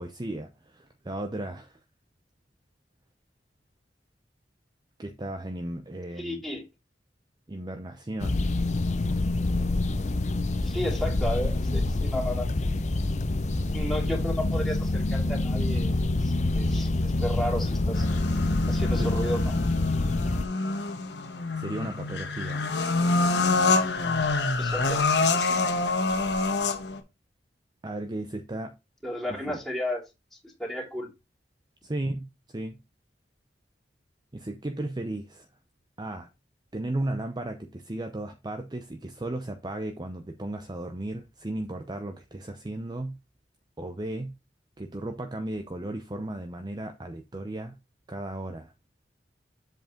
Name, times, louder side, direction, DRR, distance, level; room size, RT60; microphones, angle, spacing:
voice 1, 0.0-1.8 5.0-6.4 7.5-8.4 19.0-19.1 21.6-22.6 27.8-28.7 29.3-29.6 31.8-32.8 34.3-35.5 36.0-36.3 36.7-43.2 43.8-44.4 44.8-47.8 48.1-48.7, right 1 dB, 25° right, 0.6 m, -35 dB
voice 2, 6.2-6.6 10.6-12.5 13.6-18.1 18.7-19.6 24.6-25.7 29.0-30.0 30.4-31.1, equal, ahead, 2.7 m, -33 dB
sound 1, 8.2-20.4, left 2 dB, 40° left, 0.6 m, -26 dB
sound 2, 17.9-27.0, left 3 dB, 75° left, 1.2 m, -27 dB
7.6 x 5.1 x 3.8 m
head